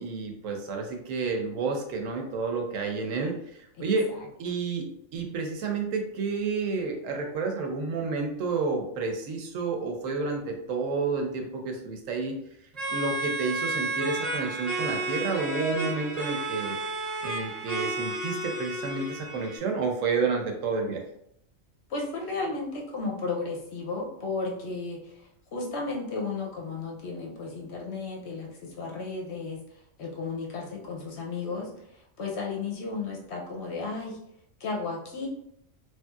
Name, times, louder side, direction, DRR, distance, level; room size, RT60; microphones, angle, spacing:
voice 1, 0.0-4.1 4.4-12.4 12.9-16.8 17.2-21.0, right 4 dB, 75° right, 2 dB, 1.0 m, -30 dB
voice 2, 3.8-4.3 21.9-34.2 34.6-35.3, left 3 dB, 65° left, 0 dB, 0.8 m, -34 dB
sound 1, 12.7-19.6, right 2 dB, 40° right, 0.6 m, -32 dB
3.1 x 2.6 x 2.3 m, 0.74 s
omnidirectional pair, 1.4 m